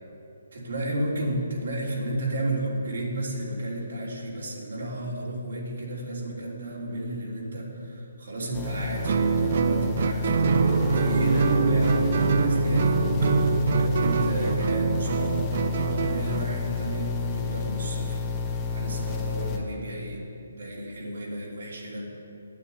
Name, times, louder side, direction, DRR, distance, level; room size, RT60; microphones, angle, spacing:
voice 1, 0.5-12.0 12.3-13.3 13.8-15.5 15.8-18.2 18.7-22.1, right 1 dB, 70° right, -3 dB, 3.2 m, -33 dB
sound 1, 8.5-19.6, left 4 dB, 15° left, 1.2 m, -30 dB
Guitar, 9.0-16.5, right 7 dB, 55° right, 0.4 m, -26 dB
sound 2, 10.4-15.5, right 2 dB, 35° right, 2.2 m, -26 dB
9.8 x 8.6 x 8.0 m, 2.6 s
hypercardioid pair, 150°, 0 cm